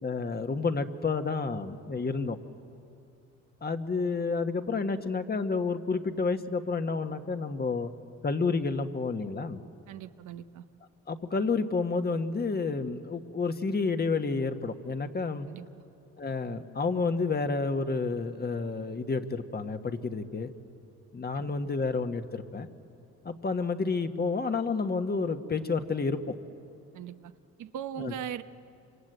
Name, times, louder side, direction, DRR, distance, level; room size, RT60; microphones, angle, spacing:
voice 1, 0.0-2.4 3.6-7.9 8.2-9.6 11.1-15.5 16.2-20.5 21.1-22.7 23.2-26.2 28.0-28.1, left 4 dB, 30° left, 7 dB, 1.4 m, -30 dB
voice 2, 9.9-10.7 15.5-15.7 21.3-21.5 26.9-27.3 27.6-28.4, right 9 dB, 80° right, 9 dB, 1.0 m, -39 dB
26.0 x 25.5 x 8.1 m, 2.7 s
cardioid pair, 90°, 30 cm